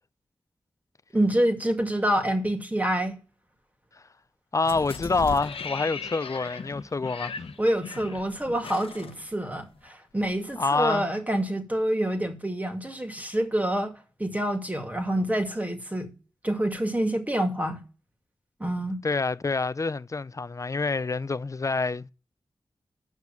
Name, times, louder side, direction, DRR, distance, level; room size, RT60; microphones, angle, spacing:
voice 1, 1.1-3.2 7.6-13.9 14.2-16.1 16.4-17.8 18.6-19.0, right 1 dB, 15° right, 2.3 m, -27 dB
voice 2, 4.5-7.4 10.6-11.1 19.0-22.1, left 3 dB, 35° left, 0.4 m, -27 dB
sound 1, 4.6-9.9 10.2-10.3, left 5 dB, 75° left, 0.8 m, -38 dB
8.8 x 6.0 x 7.2 m
cardioid pair, 45°, 10 cm